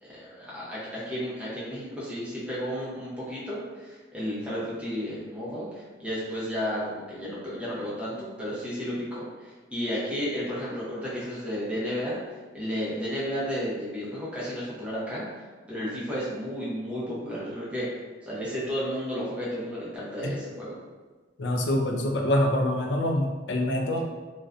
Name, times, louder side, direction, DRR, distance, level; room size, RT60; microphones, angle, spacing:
voice 1, 0.0-12.2 12.5-17.9 18.2-20.7, equal, 5° right, -8 dB, 0.6 m, -33 dB
voice 2, 21.4-24.0, left 1 dB, 65° left, 2 dB, 0.3 m, -25 dB
2.5 x 2.1 x 2.4 m, 1.4 s
head